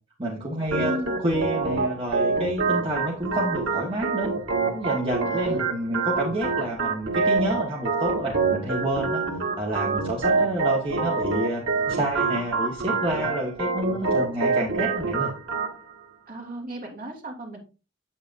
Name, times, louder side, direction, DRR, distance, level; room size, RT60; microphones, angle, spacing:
voice 1, 0.2-0.9 1.2-4.3 4.7-9.2 9.6-15.3, right 1 dB, 25° right, -4 dB, 1.5 m, -28 dB
Organ, 0.7-15.7, right 4 dB, 90° right, 1.6 m, -26 dB
voice 2, 0.8-1.2 5.3-5.6 16.3-17.6, equal, 45° right, 0 dB, 2.7 m, -35 dB
8.5 x 7.5 x 2.6 m, 0.32 s
head